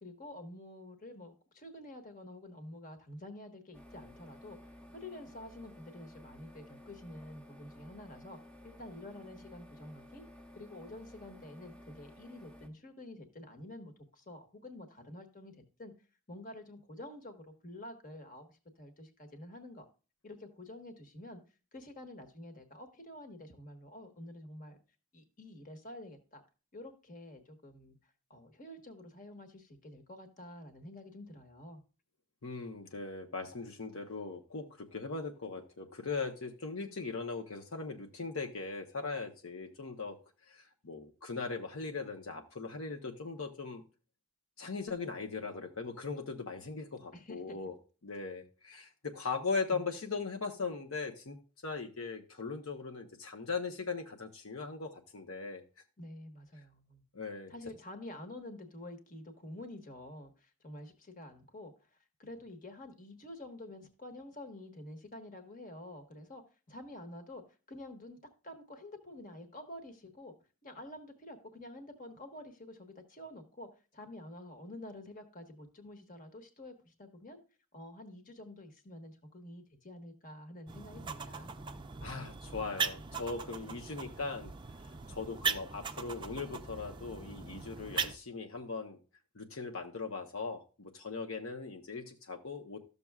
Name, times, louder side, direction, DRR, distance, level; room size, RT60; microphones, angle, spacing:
voice 1, 0.0-4.6 4.9-8.4 8.6-10.2 10.5-15.9 16.3-19.8 20.2-21.4 21.7-24.8 25.1-26.4 26.7-28.0 28.3-31.8 47.1-47.6 49.7-49.8 56.0-57.0 57.5-61.7 62.2-66.4 66.7-68.2 68.4-70.3 70.6-77.4 77.7-81.5, left 1 dB, 40° left, 6 dB, 1.3 m, -49 dB
sound 1, 3.7-12.7, left 1 dB, 5° left, 0.8 m, -54 dB
voice 2, 32.4-40.2 40.5-43.8 44.6-47.7 48.0-51.4 51.6-55.6 57.1-57.5 82.0-84.5 85.1-89.0 89.3-92.8, left 4 dB, 70° left, 3 dB, 0.9 m, -39 dB
sound 2, 80.7-88.2, right 5 dB, 20° right, 0.4 m, -39 dB
13.0 x 6.8 x 2.3 m, 0.35 s
head